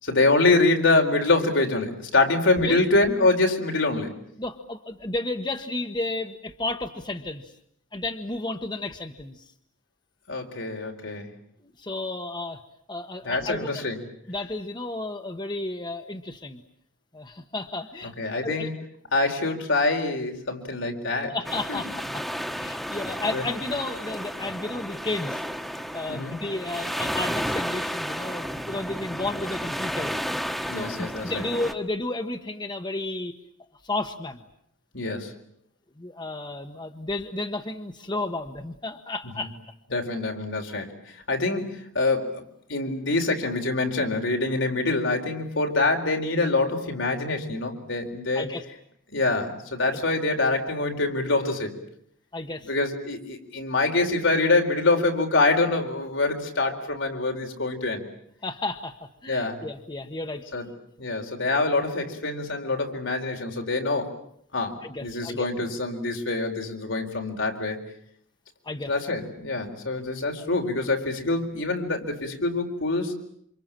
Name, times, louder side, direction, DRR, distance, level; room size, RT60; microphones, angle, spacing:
voice 1, 0.0-4.2 10.3-11.3 13.2-14.0 18.0-18.7 19.1-21.4 21.7-21.8 23.3-23.4 26.1-26.3 30.7-31.5 34.9-35.3 39.4-39.5 39.9-40.9 41.3-42.4 42.7-48.5 49.1-51.7 52.7-58.0 59.3-59.6 60.5-60.7 61.0-64.1 64.5-67.8 68.9-73.1, left 2 dB, 85° left, 3 dB, 4.4 m, -25 dB
voice 2, 4.4-7.4 7.9-9.4 11.8-12.6 12.9-13.8 14.3-16.6 17.1-18.1 18.4-18.7 21.3-22.2 22.5-25.4 25.9-30.2 30.7-33.3 33.8-34.4 36.0-39.5 48.3-48.6 52.3-52.7 58.4-58.9 59.2-60.5 64.8-65.5 68.6-68.9 70.0-70.1, left 2 dB, 25° left, 7 dB, 1.2 m, -32 dB
sound 1, 21.4-31.7, equal, ahead, 1.4 m, -32 dB
28.0 x 26.5 x 7.6 m, 0.70 s
head